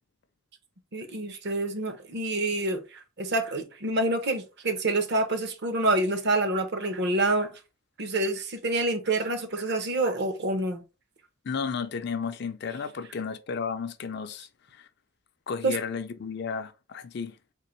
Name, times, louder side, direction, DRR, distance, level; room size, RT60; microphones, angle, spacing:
voice 1, 0.9-7.5 8.0-10.8 15.6-15.8, right 2 dB, 55° right, 0.7 m, -27 dB
voice 2, 11.4-14.9 15.5-17.4, left 5 dB, 55° left, 0.4 m, -33 dB
3.7 x 2.9 x 3.0 m
head